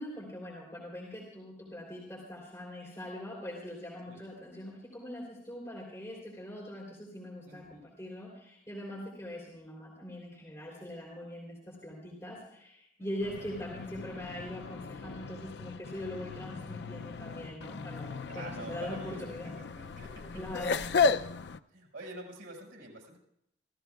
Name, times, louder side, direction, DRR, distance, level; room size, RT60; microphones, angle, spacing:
voice 1, 0.0-19.5 20.3-20.8, left 1 dB, 15° left, -4 dB, 3.2 m, -42 dB
voice 2, 7.5-7.8 13.0-13.4 18.3-19.2 19.4-20.3 21.7-23.2, right 1 dB, 80° right, -1 dB, 5.7 m, -46 dB
sound 1, 13.2-21.6, left 4 dB, 60° left, 0.4 m, -35 dB
27.5 x 14.5 x 2.4 m, 0.75 s
head